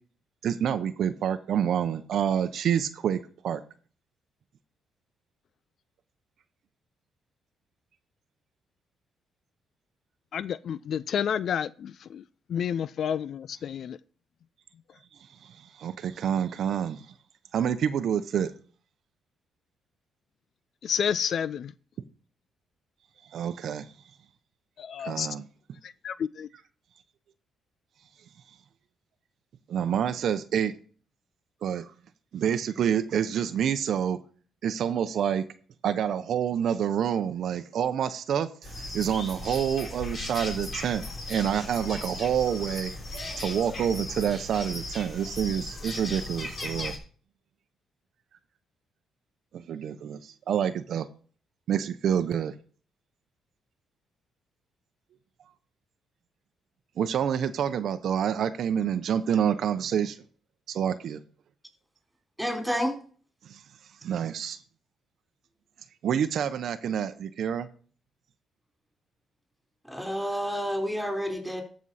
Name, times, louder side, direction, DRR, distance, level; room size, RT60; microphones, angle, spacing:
voice 1, 0.4-3.2 3.4-3.6 15.4-17.0 17.5-18.5 23.3-23.9 25.0-25.4 29.7-30.7 31.6-31.9 32.3-34.2 34.6-35.4 35.8-42.9 43.4-46.9 49.5-51.1 51.7-52.5 57.0-60.2 60.7-61.2 63.5-63.6 64.0-64.6 66.0-67.7, right 8 dB, 65° right, 0.7 m, -27 dB
voice 2, 10.3-12.2 12.5-14.0 20.8-21.7 24.8-25.3 25.8-26.5, left 8 dB, 60° left, 0.4 m, -30 dB
sound 1, 38.6-47.0, left 2 dB, 45° left, 3.5 m, -37 dB
voice 3, 62.4-62.9 69.9-71.6, equal, ahead, 3.8 m, -29 dB
13.5 x 6.2 x 4.1 m
cardioid pair, 90°, 0 cm